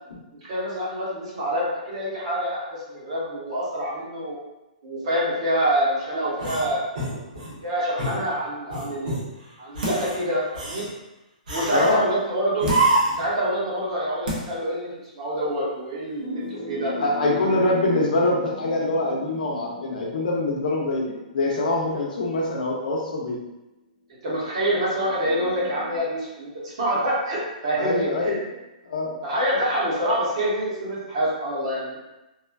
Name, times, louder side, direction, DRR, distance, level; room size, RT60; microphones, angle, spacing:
voice 1, 0.3-4.4 4.8-6.8 7.6-9.3 9.6-10.8 11.5-12.7 13.2-16.9 17.4-17.6 24.2-28.4 29.2-32.0, equal, 40° right, -6 dB, 0.9 m, -26 dB
sound 1, 6.4-7.6 8.0-8.2 8.7-9.2 9.7-10.2 10.6-10.9 11.5-12.0 12.6-13.3, right 2 dB, 65° right, 1.1 m, -26 dB
sound 2, 9.8-10.3 10.7-10.8 12.6-13.1 13.8-13.9 14.2-14.7 15.0-15.1, equal, 80° right, 0.8 m, -31 dB
voice 2, 11.7-12.0 17.0-23.4 27.8-29.1, left 2 dB, 75° left, -2 dB, 0.7 m, -24 dB
sound 3, 16.2-22.1 23.0-23.1 24.9-26.0, left 1 dB, 20° left, 0.6 m, -38 dB
3.0 x 2.2 x 2.3 m, 0.97 s
hypercardioid pair, 175°, 5 cm